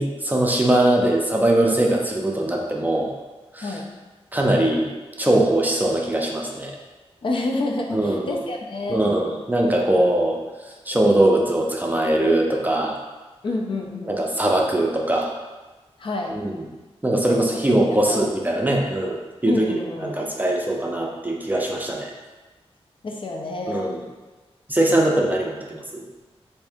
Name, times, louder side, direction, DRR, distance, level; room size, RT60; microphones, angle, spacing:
voice 1, 0.0-3.1 3.5-3.8 4.3-6.7 7.9-8.3 8.9-10.4 10.9-13.0 14.1-15.3 16.3-16.6 17.0-22.1 23.7-24.0 24.7-26.0, right 1 dB, 15° right, -1 dB, 0.5 m, -21 dB
voice 2, 7.2-9.0 13.4-14.2 16.0-16.3 17.3-17.4 18.1-18.2 19.5-20.2 23.0-23.9, left 2 dB, 50° left, 1 dB, 0.5 m, -28 dB
3.5 x 2.7 x 3.4 m, 1.2 s
wide cardioid pair, 95°, 11 cm